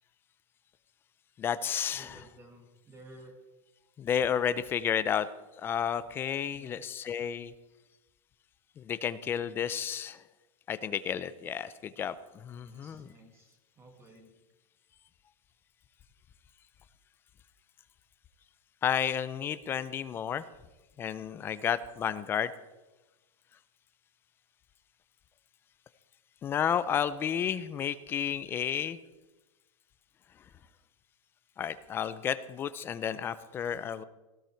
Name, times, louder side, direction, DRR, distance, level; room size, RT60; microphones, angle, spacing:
voice 1, 1.4-2.2 4.0-5.3 5.6-7.5 8.8-10.2 10.7-13.1 18.8-20.4 21.0-22.5 26.4-29.0 31.6-34.0, left 8 dB, 15° left, 14 dB, 0.4 m, -32 dB
voice 2, 1.9-3.3 6.5-6.9 12.6-14.4, right 1 dB, 15° right, 4 dB, 1.7 m, -54 dB
18.0 x 16.0 x 4.5 m, 1.1 s
supercardioid pair, 175°, 18 cm